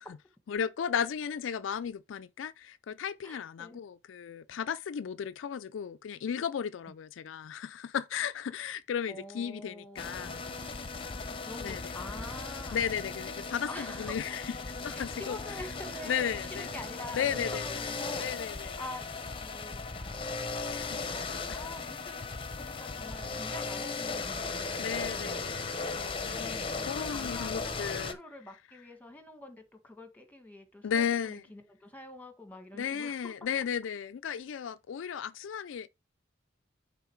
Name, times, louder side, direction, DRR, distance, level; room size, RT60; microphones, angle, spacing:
voice 1, 0.5-10.4 11.6-11.8 12.7-14.6 14.8-15.4 16.1-16.7 17.1-17.8 18.2-18.8 20.7-21.7 24.8-28.2 30.8-31.4 32.7-35.9, left 8 dB, 70° left, 0.4 m, -35 dB
voice 2, 3.2-3.8 6.9-7.0 9.1-10.4 11.3-12.8 13.6-14.1 14.8-18.5 18.8-19.1 19.4-20.1 21.1-21.2 21.5-22.2 22.6-25.4 26.2-33.3, left 1 dB, 10° left, 1.4 m, -46 dB
sound 1, 10.0-28.1, left 4 dB, 25° left, 0.8 m, -37 dB
9.3 x 3.9 x 4.5 m
head